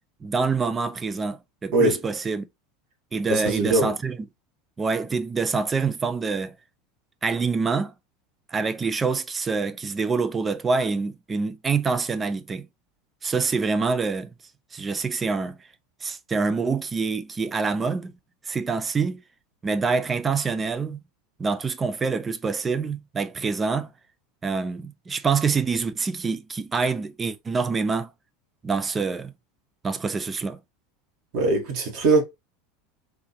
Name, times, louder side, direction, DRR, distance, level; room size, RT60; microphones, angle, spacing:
voice 1, 0.2-2.4 3.1-4.3 4.8-6.5 7.2-7.9 8.5-12.7 13.2-14.3 14.7-15.6 16.0-18.1 18.5-19.2 19.6-21.0 21.4-23.9 24.4-28.1 28.6-29.3 29.8-30.6, right 4 dB, 20° right, 0.4 m, -26 dB
voice 2, 3.3-3.9 31.3-32.2, right 2 dB, 50° right, 1.6 m, -21 dB
3.5 x 2.8 x 2.9 m
figure-of-eight pair, 75°, 0 cm